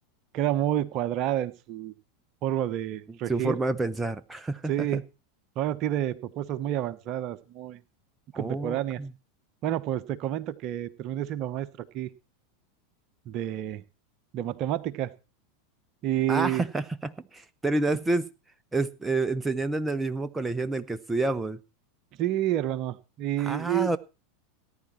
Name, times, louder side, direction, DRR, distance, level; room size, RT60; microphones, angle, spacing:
voice 1, 0.3-1.9 2.4-3.6 4.7-5.0 5.6-7.8 8.3-9.0 9.6-12.1 13.2-13.8 14.3-15.1 16.0-16.6 22.2-23.9, right 12 dB, 45° right, 14 dB, 1.1 m, -29 dB
voice 2, 3.3-5.0 8.3-9.1 16.3-18.3 18.7-21.6 23.4-24.0, right 2 dB, 10° right, 11 dB, 0.9 m, -29 dB
18.5 x 10.5 x 4.5 m, 0.31 s
figure-of-eight pair, 85°, 0 cm